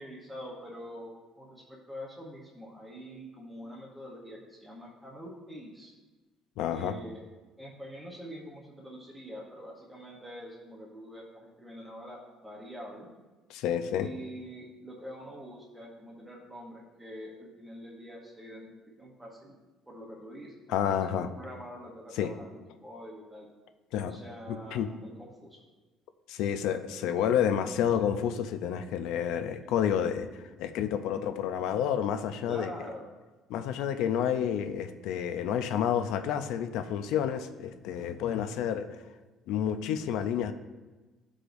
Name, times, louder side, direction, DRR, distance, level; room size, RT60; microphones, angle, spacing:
voice 1, 0.0-5.9 6.7-7.2 7.6-13.1 14.0-18.7 19.0-19.5 19.9-23.5 24.0-25.6 32.5-33.1, equal, 5° right, -3 dB, 0.8 m, -45 dB
voice 2, 6.6-7.0 13.5-14.1 20.7-21.3 22.2-22.3 23.9-24.2 24.7-24.9 26.3-30.3 30.6-32.7 33.5-38.9 39.5-40.5, left 9 dB, 70° left, 9 dB, 0.4 m, -29 dB
11.5 x 4.9 x 2.6 m, 1.2 s
cardioid pair, 170°, 0 cm